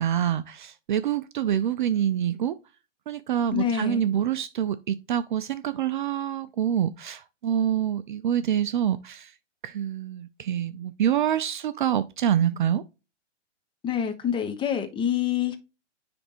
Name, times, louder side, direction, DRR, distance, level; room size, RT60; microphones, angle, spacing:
voice 1, 0.0-2.5 3.1-9.3 9.6-12.8, right 10 dB, 40° right, 0.5 m, -26 dB
voice 2, 3.5-4.1 13.8-15.6, left 9 dB, 15° left, 0.9 m, -26 dB
9.8 x 3.4 x 3.0 m
hypercardioid pair, 125°, 37 cm